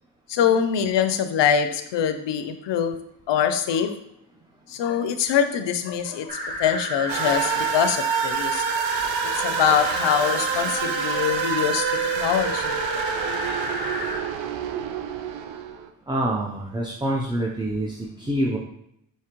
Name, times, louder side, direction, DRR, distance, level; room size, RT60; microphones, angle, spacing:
voice 1, 0.3-3.0 3.3-4.0 4.7-8.6 9.2-11.9 12.2-12.7, left 8 dB, 60° left, 10 dB, 0.6 m, -23 dB
sound 1, 6.3-14.2, equal, 50° right, 1.5 m, -30 dB
sound 2, 7.1-15.9, right 8 dB, 70° right, 0.5 m, -28 dB
voice 2, 16.1-18.6, right 1 dB, 10° right, -2 dB, 0.7 m, -26 dB
4.7 x 2.9 x 3.0 m, 0.75 s
supercardioid pair, 50°, 48 cm